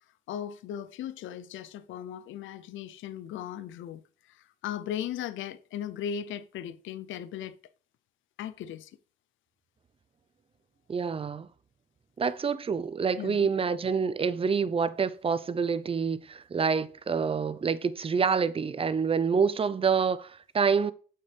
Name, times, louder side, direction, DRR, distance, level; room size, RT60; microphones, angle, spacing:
voice 1, 0.3-7.6 8.4-8.9 13.2-13.5, left 9 dB, 75° left, 0.6 m, -37 dB
voice 2, 10.9-11.5 12.2-20.9, right 6 dB, 30° right, 0.6 m, -27 dB
8.6 x 6.8 x 3.4 m
cardioid pair, 90°, 20 cm